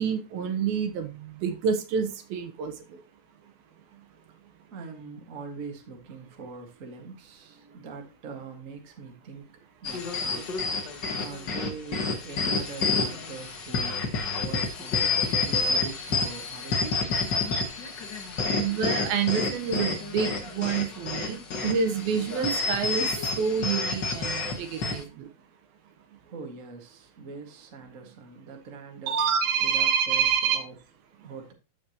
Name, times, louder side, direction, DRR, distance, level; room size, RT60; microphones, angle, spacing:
voice 1, 0.0-2.7 18.6-23.1 23.4-25.3 29.1-30.6, right 7 dB, 75° right, 7 dB, 2.8 m, -27 dB
voice 2, 4.7-9.5 9.8-10.9 11.1-14.0 14.4-16.9 26.3-29.2 29.6-30.7 31.2-31.5, right 4 dB, 40° right, 3 dB, 1.1 m, -43 dB
sound 1, 9.8-25.0, left 4 dB, 70° left, 1.0 m, -29 dB
14.5 x 5.2 x 2.9 m, 0.30 s
omnidirectional pair, 4.3 m